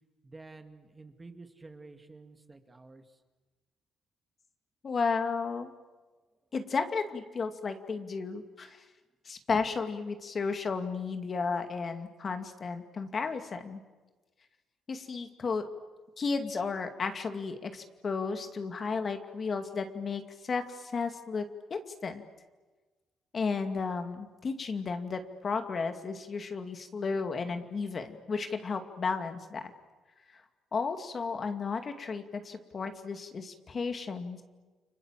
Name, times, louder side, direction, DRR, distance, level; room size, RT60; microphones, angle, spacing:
voice 1, 0.2-3.0, right 3 dB, 20° right, 7 dB, 2.1 m, -50 dB
voice 2, 4.8-5.7 6.5-8.8 9.3-13.8 14.9-15.6 16.2-22.2 23.3-29.7 30.7-34.4, left 4 dB, 45° left, 7 dB, 2.2 m, -33 dB
30.0 x 24.5 x 7.5 m, 1.3 s
cardioid pair, 90°, 0 cm